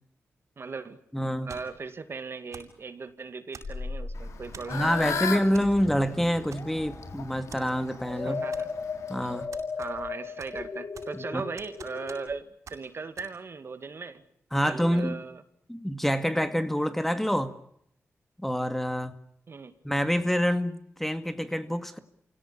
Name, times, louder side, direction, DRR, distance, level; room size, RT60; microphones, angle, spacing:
voice 1, 0.6-5.2 8.2-8.7 9.8-14.2 14.6-15.4 19.5-19.7, right 4 dB, 55° right, 10 dB, 2.3 m, -38 dB
voice 2, 1.1-1.5 4.7-8.4 9.1-9.5 11.3-11.4 14.5-15.2 15.7-17.5 18.4-19.2 19.8-22.0, equal, 5° left, 9 dB, 2.1 m, -27 dB
sound 1, 1.5-1.8 2.5-2.8 3.5-4.0 4.5-4.8 5.5-5.7 6.0-6.1 6.5-7.0 7.5-7.6 8.5-9.0 9.5-10.1 10.4-11.2 11.6-12.4 12.7-12.8 13.2-13.3, right 5 dB, 80° right, 7.6 m, -47 dB
sound 2, 3.6-12.3, left 4 dB, 50° left, 3.3 m, -37 dB
Fowl / Bird, 4.2-9.5, left 6 dB, 90° left, 3.3 m, -36 dB
27.5 x 17.5 x 10.0 m, 0.73 s
cardioid pair, 75°, 5 cm